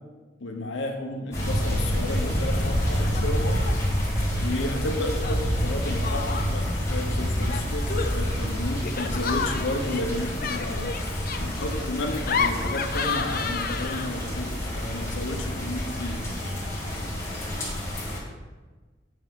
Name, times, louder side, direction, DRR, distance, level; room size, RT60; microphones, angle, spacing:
voice 1, 0.4-3.6 4.4-11.0 11.4-16.3, left 1 dB, 75° left, 3 dB, 1.0 m, -32 dB
Laughter, 1.3-1.8 2.0-2.6 3.0-3.9 5.2-6.7 7.4-14.3, left 5 dB, 50° left, 0.6 m, -32 dB
sound 1, 1.3-18.2, equal, 15° left, 2.4 m, -28 dB
8.7 x 6.8 x 3.8 m, 1.3 s
head